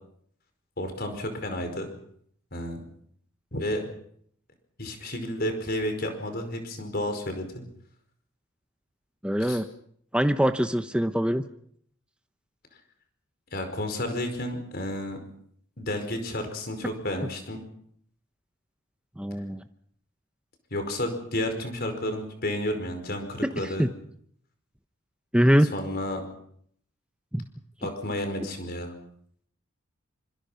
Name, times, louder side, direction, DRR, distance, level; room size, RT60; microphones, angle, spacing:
voice 1, 0.8-1.9 2.5-2.8 3.5-3.8 4.8-7.6 9.4-9.6 13.5-15.2 15.8-17.6 20.7-23.9 25.7-26.3 27.8-28.9, left 1 dB, 50° left, 6 dB, 5.0 m, -31 dB
voice 2, 9.2-9.6 10.1-11.4 19.2-19.6 23.8-23.9 25.3-25.7 27.3-27.4, equal, 5° right, 8 dB, 0.9 m, -23 dB
25.5 x 25.5 x 5.8 m, 0.66 s
head